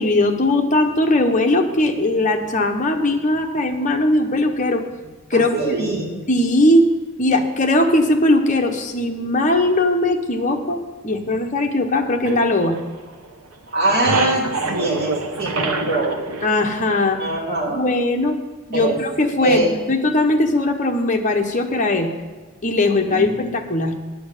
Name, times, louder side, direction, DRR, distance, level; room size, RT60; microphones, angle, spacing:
voice 1, 0.0-4.8 5.3-5.8 6.3-6.8 7.2-12.8 16.4-17.2 17.7-18.4 18.7-22.1 22.6-23.9, left 2 dB, 35° left, 3 dB, 1.0 m, -19 dB
voice 2, 5.3-6.1 13.7-16.2 17.2-17.8 18.7-19.0 19.4-19.7 22.9-23.5, right 2 dB, 45° right, -4 dB, 2.9 m, -23 dB
sound 1, 12.2-13.4 13.7-17.4, right 3 dB, 75° right, 0.9 m, -26 dB
9.9 x 7.7 x 6.7 m, 1.4 s
head